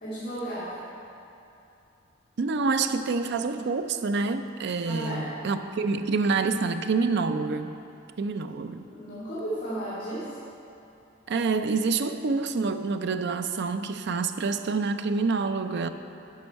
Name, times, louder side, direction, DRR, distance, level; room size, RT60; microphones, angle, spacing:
voice 1, 0.0-0.9 4.8-5.3 8.9-10.4, right 1 dB, 45° left, -12 dB, 2.1 m, -34 dB
voice 2, 2.4-7.8 8.2-8.9 11.3-15.9, right 4 dB, 55° right, 9 dB, 0.4 m, -27 dB
10.5 x 6.1 x 4.6 m, 2.7 s
head